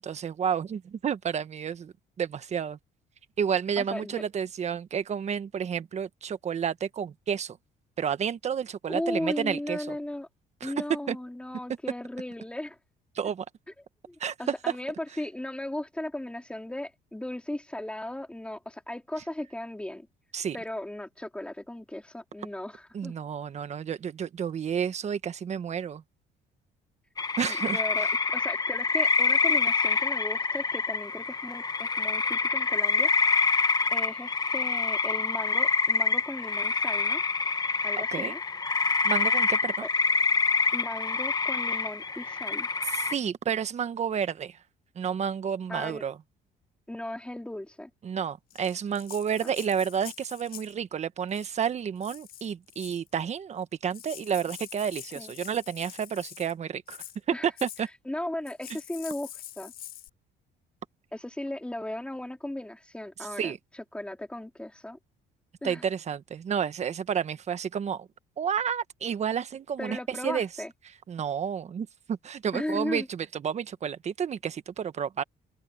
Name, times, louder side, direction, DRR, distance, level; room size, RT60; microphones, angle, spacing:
voice 1, 0.0-2.8 3.4-7.6 8.0-9.9 10.6-10.7 11.1-11.2 13.1-13.4 14.2-14.3 20.3-20.6 22.9-26.0 27.4-28.1 38.1-38.3 39.0-39.8 42.9-44.6 44.9-46.2 48.0-57.0 57.4-57.9 63.4-63.6 65.6-68.1 68.4-70.5 71.1-75.2, right 7 dB, 40° right, 1.3 m, -31 dB
voice 2, 3.8-4.3 8.9-10.3 10.6-12.8 14.1-20.1 20.5-23.1 27.4-33.1 33.9-37.2 37.8-38.4 39.8-39.9 40.7-42.7 45.7-46.0 46.9-47.9 49.4-49.5 55.1-55.3 57.3-57.5 58.1-59.7 61.1-65.0 65.6-65.8 69.8-70.7 72.5-73.1, left 1 dB, 5° left, 4.0 m, -36 dB
sound 1, 27.2-43.1, left 4 dB, 25° left, 1.1 m, -26 dB
Rattle (instrument), 48.5-50.8 51.3-51.7 52.0-53.1 53.6-53.7 53.9-56.5 56.9-57.2 57.6-57.8 58.5-60.1, left 12 dB, 65° left, 6.2 m, -45 dB
open air
cardioid pair, 110°, 17 cm